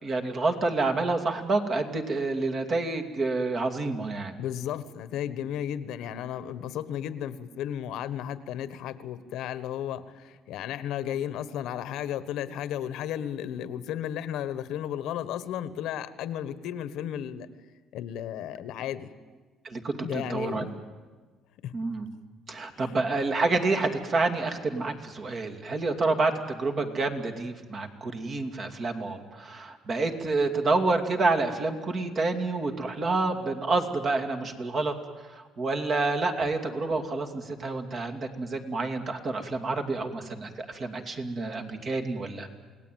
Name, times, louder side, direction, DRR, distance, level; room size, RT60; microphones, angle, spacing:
voice 1, 0.0-4.4 19.6-20.6 21.7-22.1 22.5-34.9 35.3-42.5, right 3 dB, 40° right, 6 dB, 2.5 m, -28 dB
voice 2, 4.4-17.5 17.9-19.1 20.0-20.8 21.6-21.7 22.8-23.0, left 10 dB, 80° left, 14 dB, 1.2 m, -34 dB
28.5 x 18.0 x 9.3 m, 1.4 s
cardioid pair, 120°, 0 cm